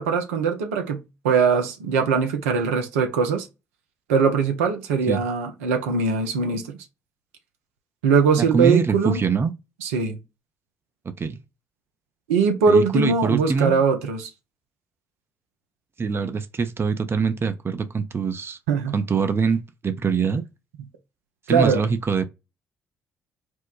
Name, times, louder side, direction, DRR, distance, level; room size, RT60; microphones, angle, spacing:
voice 1, 0.0-3.5 4.1-6.8 8.0-9.2 9.8-10.2 12.3-14.3 18.7-19.0 21.5-21.9, right 5 dB, 80° right, 0.6 m, -21 dB
voice 2, 8.4-9.5 11.2-11.4 12.7-13.8 16.0-18.6 18.9-20.4 21.5-22.2, right 5 dB, 35° right, 0.6 m, -24 dB
4.4 x 2.1 x 2.4 m
hypercardioid pair, 45°, 7 cm